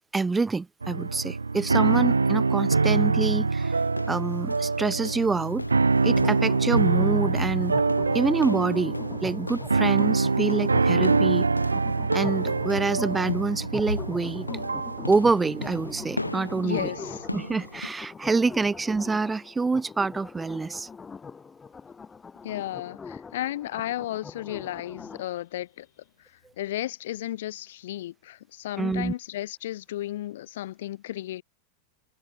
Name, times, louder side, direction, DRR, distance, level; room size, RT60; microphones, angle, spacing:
voice 1, 0.1-3.8 4.1-5.6 6.0-7.7 8.1-11.5 12.1-14.4 15.1-16.9 17.3-20.9 28.8-29.1, right 4 dB, 10° right, 1.6 m, -26 dB
sound 1, 0.8-17.1, right 4 dB, 80° right, 0.4 m, -25 dB
sound 2, 3.6-17.9, left 2 dB, 85° left, 2.2 m, -38 dB
sound 3, 6.0-25.3, left 5 dB, 15° left, 2.8 m, -42 dB
voice 2, 16.6-17.3 22.4-25.9 26.6-31.4, left 14 dB, 55° left, 4.3 m, -33 dB
figure-of-eight pair, 90°, 0 cm